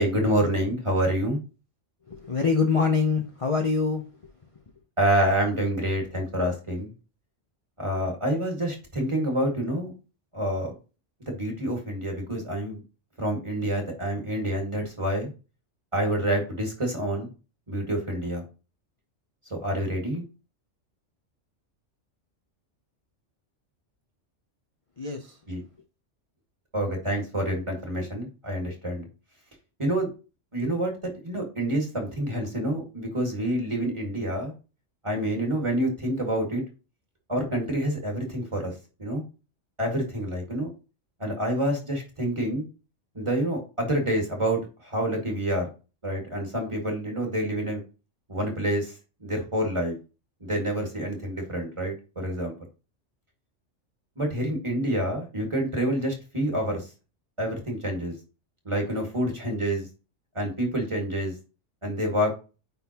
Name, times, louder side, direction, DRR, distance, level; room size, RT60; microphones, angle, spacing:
voice 1, 0.0-1.4 5.0-6.9 7.8-9.9 10.3-10.7 11.2-12.8 13.2-15.3 15.9-17.3 17.7-18.4 19.5-20.2 25.5-25.6 26.7-29.1 29.8-30.1 30.5-30.9 31.2-34.5 35.0-36.6 37.3-38.7 39.0-39.2 39.8-40.7 41.2-42.7 43.1-45.7 46.0-47.8 48.3-48.9 49.2-50.0 50.4-52.5 54.2-56.9 57.4-58.1 58.7-59.9 60.4-61.3 61.8-62.3, right 1 dB, 25° right, 1 dB, 2.0 m, -27 dB
voice 2, 2.1-4.0 25.0-25.2, left 5 dB, 35° left, 3 dB, 0.7 m, -24 dB
9.2 x 3.8 x 2.9 m, 0.32 s
omnidirectional pair, 1.2 m